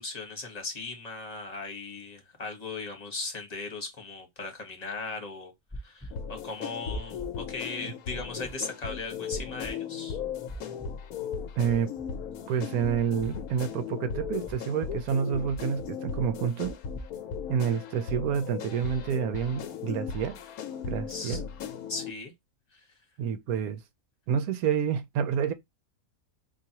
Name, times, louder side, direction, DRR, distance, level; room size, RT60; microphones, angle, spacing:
voice 1, 0.0-5.5 5.8-10.2 21.1-21.4 21.9-22.3 22.7-22.8, left 3 dB, 30° left, 1.2 m, -38 dB
sound 1, 5.7-6.1 6.9-7.3 8.1-8.5 9.3-9.7 10.5-10.9 11.7-12.1 12.9-13.3 14.2-14.6 15.5-15.9 16.6-17.1, equal, 5° left, 0.4 m, -40 dB
sound 2, 6.1-22.1, left 7 dB, 85° left, 1.1 m, -37 dB
voice 2, 11.6-11.9 12.5-16.8 17.5-20.4 20.9-21.4 23.2-23.8 24.3-25.5, right 7 dB, 80° right, 1.1 m, -28 dB
4.0 x 2.6 x 2.8 m
omnidirectional pair, 1.5 m